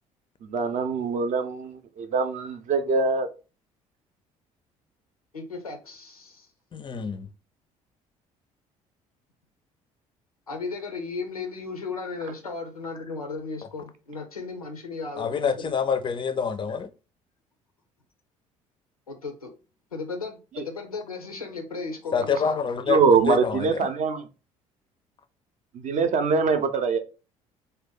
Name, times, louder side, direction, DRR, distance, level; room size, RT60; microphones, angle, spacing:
voice 1, 0.4-3.3 20.6-20.7 22.9-24.3 25.7-27.0, right 5 dB, 40° right, 0.5 m, -23 dB
voice 2, 5.3-6.5 10.5-15.7 19.1-19.5 19.9-22.6, left 4 dB, 90° left, 0.5 m, -35 dB
voice 3, 6.7-7.3 15.2-16.9 22.1-23.9, left 6 dB, 25° left, 0.4 m, -27 dB
2.6 x 2.1 x 3.7 m
figure-of-eight pair, 50°, 18 cm